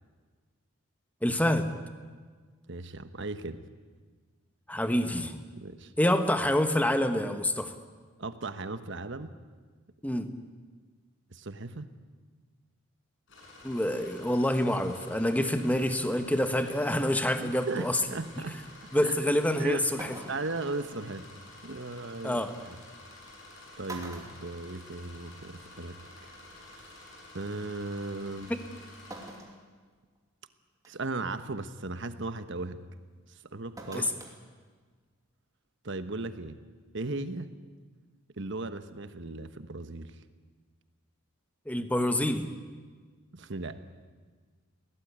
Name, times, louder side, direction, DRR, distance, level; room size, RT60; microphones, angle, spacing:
voice 1, 1.2-1.7 4.7-5.3 6.0-7.7 10.0-10.3 13.6-18.0 18.9-20.2 22.2-22.5 28.5-28.6 33.9-34.1 41.7-42.5, left 1 dB, 5° left, 8 dB, 1.2 m, -27 dB
voice 2, 2.7-3.6 5.6-5.9 8.2-9.3 11.3-11.9 17.4-18.6 19.0-19.1 19.6-19.8 20.3-21.3 21.6-22.8 23.8-26.0 26.8-26.9 27.3-28.5 30.9-32.8 33.3-34.1 35.8-36.6 36.9-37.5 38.4-40.1 43.3-43.8, right 2 dB, 60° right, 10 dB, 1.2 m, -37 dB
sound 1, 13.3-29.3, left 2 dB, 60° left, 7.0 m, -50 dB
sound 2, 19.5-19.6 20.0-20.6 22.2-22.3 23.3-23.5 23.9-25.3 25.6-25.7 26.9-27.0 29.1-29.6 30.2-30.3 30.8-31.1 33.8-34.4 34.7-34.8, right 2 dB, 15° right, 2.8 m, -44 dB
21.5 x 17.5 x 9.5 m, 1.5 s
head